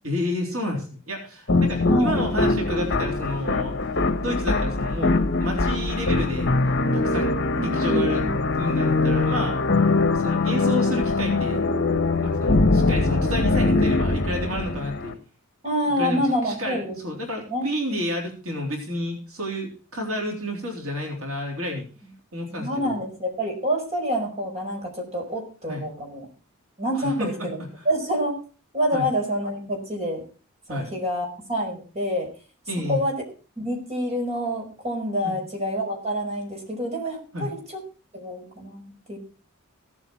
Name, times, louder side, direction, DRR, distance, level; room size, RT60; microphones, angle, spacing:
voice 1, 0.0-3.8 4.2-6.5 6.9-8.2 8.6-9.7 10.1-11.6 12.2-15.2 16.0-21.9 22.3-23.0 25.7-25.8 27.0-27.5 28.9-29.1 30.7-30.9 32.7-33.0 35.2-35.4 37.3-37.5, left 1 dB, 75° right, 0 dB, 3.7 m, -30 dB
sound 1, 1.5-15.1, left 3 dB, 55° left, 1.4 m, -22 dB
voice 2, 1.9-2.4 7.6-8.5 15.6-16.9 17.5-17.7 22.5-26.3 26.8-27.6 27.9-28.3 28.7-30.2 30.7-32.3 32.9-33.2 33.6-37.6 38.1-39.2, equal, 30° right, 1 dB, 5.3 m, -27 dB
17.0 x 8.2 x 4.6 m, 0.38 s
head